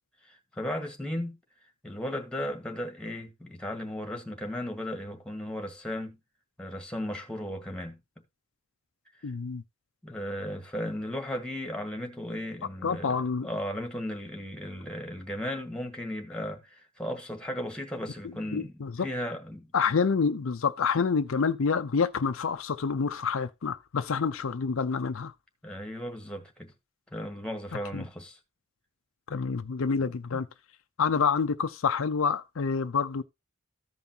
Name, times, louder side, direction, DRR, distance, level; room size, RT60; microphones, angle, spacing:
voice 1, 0.3-1.4 1.8-6.2 6.6-8.0 10.0-19.7 25.6-26.7 27.1-28.4 30.3-30.4, equal, 5° left, 1.5 m, -36 dB
voice 2, 9.2-9.6 12.8-13.5 18.5-18.9 19.7-25.3 27.9-28.0 29.3-30.5 31.0-33.2, left 5 dB, 65° left, 0.5 m, -27 dB
14.5 x 5.4 x 2.8 m
head